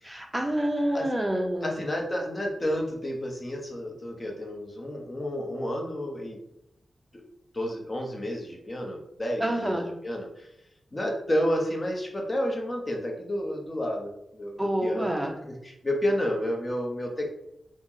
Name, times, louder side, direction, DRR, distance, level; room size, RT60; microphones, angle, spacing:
voice 1, 0.0-1.7 9.4-9.9 14.6-15.3, right 1 dB, 10° right, 2 dB, 0.6 m, -27 dB
voice 2, 1.6-6.4 7.5-10.5 10.9-17.3, equal, 30° left, 0 dB, 0.7 m, -31 dB
2.8 x 2.0 x 3.6 m, 0.81 s
wide cardioid pair, 85°, 0 cm